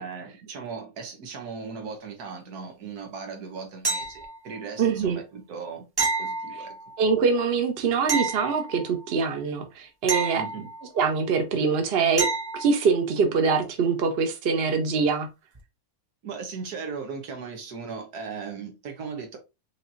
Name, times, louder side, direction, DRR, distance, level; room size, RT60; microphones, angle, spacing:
voice 1, 0.0-5.8 6.2-6.8 10.3-10.7 16.2-19.4, right 5 dB, 90° right, 1.6 m, -37 dB
sound 1, 3.8-4.6 6.0-7.0 8.1-9.1 10.1-11.1 12.2-12.8 15.5-15.6, right 3 dB, 25° right, 0.5 m, -29 dB
voice 2, 4.8-5.2 7.0-10.4 11.0-12.3 12.5-15.3, right 5 dB, 50° right, 0.9 m, -24 dB
5.0 x 2.8 x 2.6 m
omnidirectional pair, 1.6 m